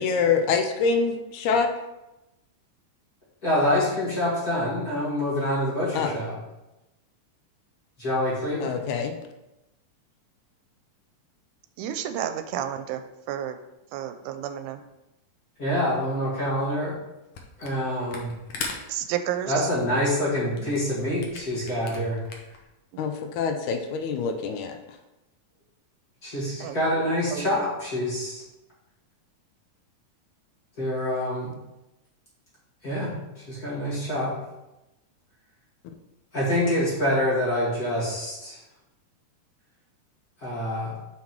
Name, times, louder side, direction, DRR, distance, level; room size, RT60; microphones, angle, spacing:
voice 1, 0.0-1.7 5.9-6.1 8.6-9.1 23.0-24.8, left 5 dB, 85° left, 5 dB, 2.1 m, -25 dB
voice 2, 3.4-6.3 8.0-8.7 15.6-17.0 17.6-18.4 19.5-22.2 26.2-28.4 30.8-31.5 32.8-34.3 36.3-38.6 40.4-41.0, left 1 dB, 30° left, -8 dB, 2.5 m, -26 dB
voice 3, 11.8-13.0 13.3-13.6 13.9-14.8 18.9-19.7 20.6-20.7 22.9-23.0 26.6-27.6, right 10 dB, 90° right, 9 dB, 2.1 m, -31 dB
Camera, 17.3-17.8 18.1-22.6, left 4 dB, 65° left, 1.5 m, -38 dB
5.9 x 5.7 x 4.5 m, 0.95 s
omnidirectional pair, 3.5 m